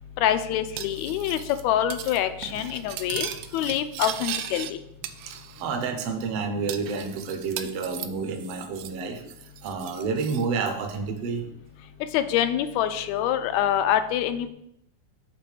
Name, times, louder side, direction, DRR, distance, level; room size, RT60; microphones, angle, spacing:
voice 1, 0.2-1.4 1.6-4.8 12.1-14.5, left 10 dB, 80° left, 10 dB, 1.8 m, -25 dB
Cutlery silverware, 0.8-1.6 1.9-2.2 2.4-4.7 5.0-5.7 6.0-6.1 6.7-9.0 9.3-10.4, right 10 dB, 80° right, 1.9 m, -37 dB
voice 2, 5.3-9.2 9.6-11.4, right 4 dB, 65° right, 5 dB, 1.7 m, -30 dB
7.5 x 3.7 x 6.4 m, 0.78 s
omnidirectional pair, 3.4 m